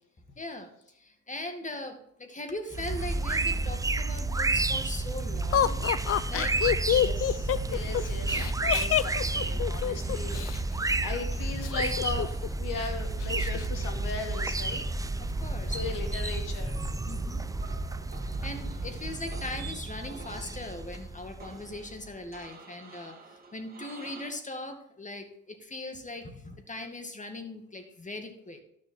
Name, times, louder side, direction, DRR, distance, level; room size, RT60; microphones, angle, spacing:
voice 1, 0.4-5.8 6.3-6.5 15.2-15.8 17.0-17.4 18.4-28.6, left 2 dB, 20° left, 6 dB, 2.1 m, -40 dB
sound 1, 2.7-22.1, right 2 dB, 10° right, 0.5 m, -31 dB
Laughter, 5.5-10.6 11.6-12.5 12.8-12.9 13.2-13.7, left 11 dB, 45° left, 0.6 m, -27 dB
voice 2, 6.9-10.6 11.0-12.3 12.6-14.8 15.7-16.8, left 4 dB, 70° left, 4 dB, 2.4 m, -38 dB
sound 2, 15.7-24.3, right 5 dB, 25° right, 2.5 m, -50 dB
12.5 x 6.7 x 4.5 m, 0.72 s
supercardioid pair, 70°, 33 cm